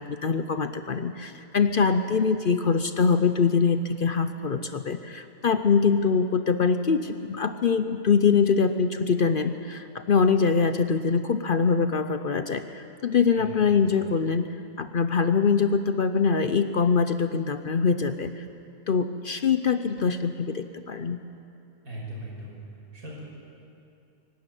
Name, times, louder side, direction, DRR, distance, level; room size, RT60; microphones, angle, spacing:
voice 1, 0.0-14.5 14.8-18.4 18.9-21.2, left 5 dB, 50° left, 10 dB, 0.6 m, -23 dB
voice 2, 13.3-13.7 21.8-22.5 22.9-23.2, right 1 dB, 85° right, -3 dB, 6.3 m, -39 dB
23.5 x 12.5 x 9.3 m, 2.6 s
omnidirectional pair, 1.5 m